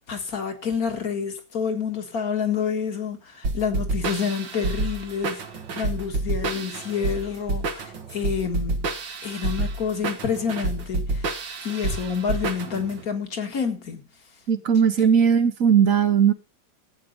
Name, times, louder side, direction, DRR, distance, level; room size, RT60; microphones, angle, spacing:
voice 1, 0.1-5.4 5.7-8.9 9.2-11.3 11.6-14.0 15.0-15.1, left 6 dB, 55° left, 2.3 m, -28 dB
sound 1, 3.4-13.0, right 3 dB, 85° right, 2.4 m, -28 dB
voice 2, 14.5-16.3, right 7 dB, 50° right, 1.4 m, -18 dB
13.5 x 8.6 x 5.4 m
omnidirectional pair, 2.0 m